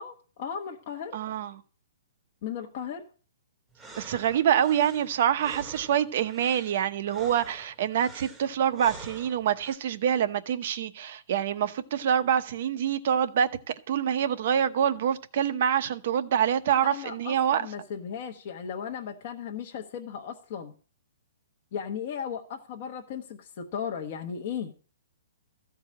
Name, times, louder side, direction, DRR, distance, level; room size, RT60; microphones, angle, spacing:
voice 1, 0.0-1.2 2.4-3.0 16.9-20.7 21.7-24.7, left 7 dB, 30° left, 1.0 m, -36 dB
voice 2, 1.1-1.6 4.0-13.5 13.9-17.6, right 9 dB, 40° right, 0.8 m, -26 dB
sound 1, 3.7-9.8, right 2 dB, 5° right, 1.1 m, -48 dB
14.5 x 4.8 x 8.6 m
hypercardioid pair, 180°, 0 cm